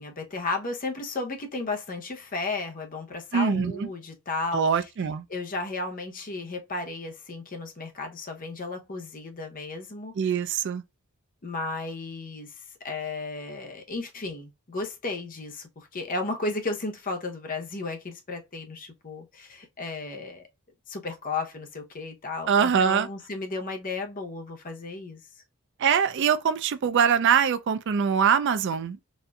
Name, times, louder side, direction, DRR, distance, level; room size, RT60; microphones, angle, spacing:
voice 1, 0.0-4.7 5.3-10.4 11.4-20.4 20.9-25.2, left 3 dB, 40° left, 0.7 m, -34 dB
voice 2, 3.3-3.9 4.5-5.2 10.2-10.8 22.5-23.1 25.8-29.0, right 7 dB, 55° right, 0.3 m, -23 dB
4.1 x 2.5 x 2.2 m
head